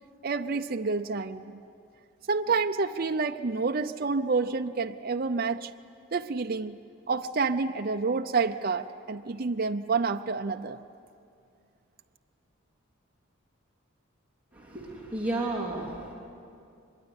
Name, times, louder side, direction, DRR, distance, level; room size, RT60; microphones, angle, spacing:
voice 1, 0.2-1.6 2.3-5.7 6.1-6.7 7.1-10.8, right 4 dB, 45° right, 6 dB, 0.6 m, -28 dB
voice 2, 14.5-16.1, right 2 dB, 5° right, -4 dB, 3.2 m, -32 dB
24.5 x 22.0 x 9.6 m, 2.5 s
head